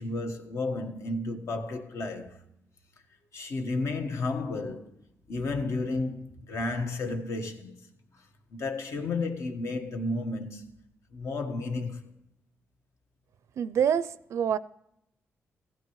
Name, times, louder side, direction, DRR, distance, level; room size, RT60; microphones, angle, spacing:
voice 1, 0.0-2.4 3.3-4.9 5.3-7.8 8.5-10.7 11.1-12.0, left 3 dB, 70° left, 1.3 m, -32 dB
voice 2, 13.6-14.6, right 8 dB, 75° right, 0.4 m, -26 dB
15.5 x 13.0 x 3.1 m
cardioid pair, 115°, 5 cm